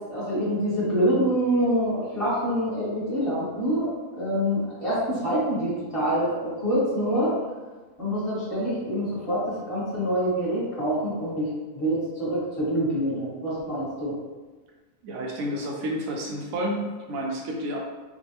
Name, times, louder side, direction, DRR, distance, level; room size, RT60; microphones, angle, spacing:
voice 1, 0.0-7.3 8.0-14.2, equal, 25° left, -10 dB, 1.2 m, -26 dB
voice 2, 15.0-17.8, equal, 70° right, -1 dB, 0.9 m, -30 dB
3.6 x 2.3 x 2.8 m, 1.3 s
omnidirectional pair, 1.7 m